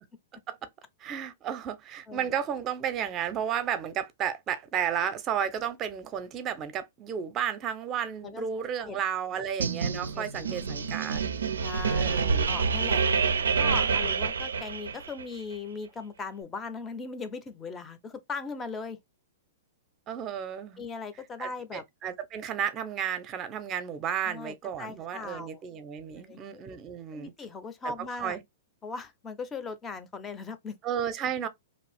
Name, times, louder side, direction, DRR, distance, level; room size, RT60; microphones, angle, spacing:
voice 1, 1.0-11.2 12.0-12.5 20.1-20.8 21.4-27.3 27.8-27.9 28.2-28.4 30.8-31.5, right 8 dB, 30° right, 0.6 m, -33 dB
sound 1, 9.6-15.2, right 5 dB, 85° right, 0.4 m, -27 dB
voice 2, 10.1-11.1 11.6-12.2 12.5-13.0 13.6-19.0 20.8-21.8 24.3-25.6 26.1-26.6 27.1-28.4 28.8-30.8, left 4 dB, 20° left, 0.6 m, -39 dB
2.7 x 2.4 x 3.3 m
hypercardioid pair, 115°, 0 cm